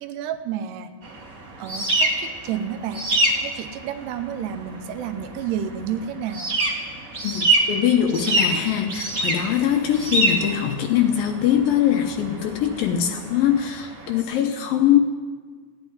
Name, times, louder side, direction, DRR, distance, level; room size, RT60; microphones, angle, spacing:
voice 1, 0.0-0.9 1.6-3.1 3.4-6.5, right 9 dB, 90° right, 8 dB, 2.9 m, -30 dB
sound 1, 1.0-14.2, right 1 dB, 40° right, 1.3 m, -26 dB
voice 2, 7.2-15.0, left 10 dB, 75° left, 5 dB, 2.3 m, -22 dB
15.0 x 9.1 x 9.6 m, 1.5 s
omnidirectional pair, 4.7 m